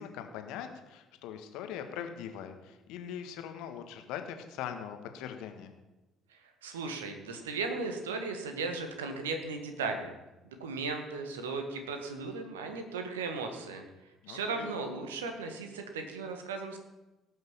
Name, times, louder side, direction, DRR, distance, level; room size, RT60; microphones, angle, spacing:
voice 1, 0.0-5.7 14.2-14.7, left 9 dB, 60° left, 7 dB, 1.6 m, -41 dB
voice 2, 6.6-10.1 10.6-13.8 14.3-16.8, right 4 dB, 75° right, 5 dB, 1.8 m, -36 dB
18.0 x 6.5 x 7.4 m, 1.0 s
figure-of-eight pair, 50°, 0 cm